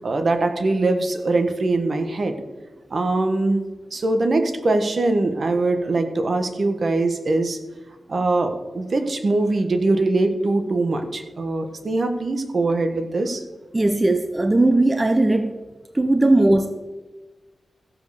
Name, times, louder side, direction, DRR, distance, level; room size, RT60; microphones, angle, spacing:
voice 1, 0.0-2.4 2.9-3.7 3.9-7.6 8.1-13.4, right 2 dB, 55° right, 7 dB, 1.3 m, -22 dB
voice 2, 13.7-15.5 15.9-16.7, right 2 dB, 25° right, 8 dB, 0.8 m, -18 dB
15.0 x 5.4 x 6.7 m, 1.2 s
cardioid pair, 75°, 0 cm